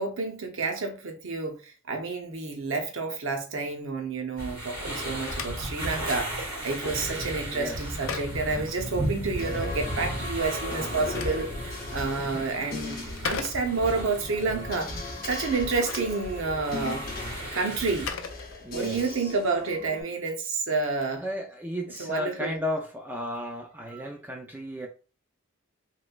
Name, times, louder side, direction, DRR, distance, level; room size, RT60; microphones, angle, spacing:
voice 1, 0.0-11.5 11.9-14.9 15.3-17.1 17.5-18.1 18.7-21.2 22.0-22.6 23.9-24.0, right 4 dB, 60° right, 0.7 m, -29 dB
sound 1, 4.4-18.1, right 1 dB, 85° right, 1.6 m, -35 dB
Telephone, 4.9-9.4 10.7-14.1 15.5-19.1, left 6 dB, 65° left, 0.4 m, -41 dB
voice 2, 7.5-7.8 12.2-12.6 18.6-19.3 21.2-24.9, left 1 dB, 10° right, 0.3 m, -34 dB
sound 2, 9.4-20.0, left 3 dB, 40° left, 0.8 m, -39 dB
3.1 x 3.1 x 2.2 m
head